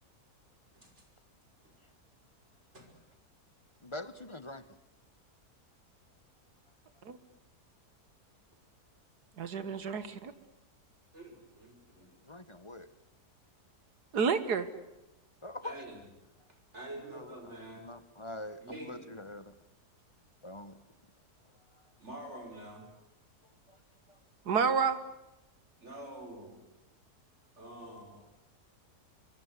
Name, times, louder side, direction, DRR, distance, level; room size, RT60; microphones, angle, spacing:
voice 1, 3.8-4.6 12.3-12.9 15.4-15.8 17.0-17.3 17.8-19.5 20.4-20.8 23.7-23.8 24.1-24.2, left 1 dB, 20° left, 0.9 m, -44 dB
voice 2, 9.4-10.3 14.1-14.7 24.5-25.0, right 6 dB, 85° right, 2.1 m, -29 dB
voice 3, 11.1-12.2 15.6-16.1 16.7-17.8 18.6-19.0 22.0-22.9 25.8-26.6 27.6-28.2, right 1 dB, 45° right, 6.0 m, -46 dB
25.0 x 24.0 x 8.2 m
omnidirectional pair, 1.7 m